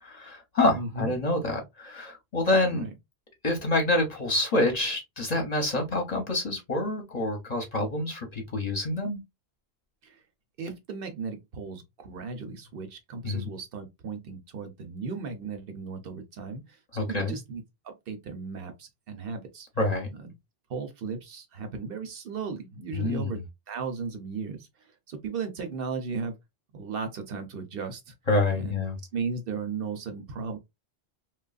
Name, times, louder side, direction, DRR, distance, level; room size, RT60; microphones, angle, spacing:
voice 1, 0.0-2.8 3.4-9.2 13.2-13.5 16.9-17.4 19.8-20.1 22.9-23.4 28.3-29.0, left 2 dB, 45° left, 0.8 m, -27 dB
voice 2, 0.7-1.1 2.7-2.9 10.0-10.2 10.6-19.7 20.1-20.3 20.7-26.3 26.7-28.1 28.5-28.8 29.1-30.6, right 5 dB, 65° right, 0.8 m, -36 dB
2.9 x 2.3 x 2.3 m
omnidirectional pair, 1.1 m